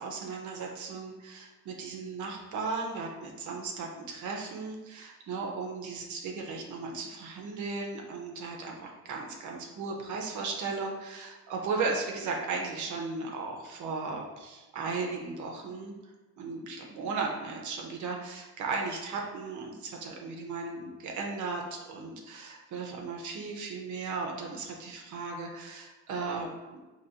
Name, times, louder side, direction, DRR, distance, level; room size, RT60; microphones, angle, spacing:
voice 1, 0.0-15.9 16.4-26.8, right 4 dB, 75° right, 1 dB, 0.7 m, -36 dB
4.0 x 2.9 x 2.8 m, 1.1 s
cardioid pair, 90°, 30 cm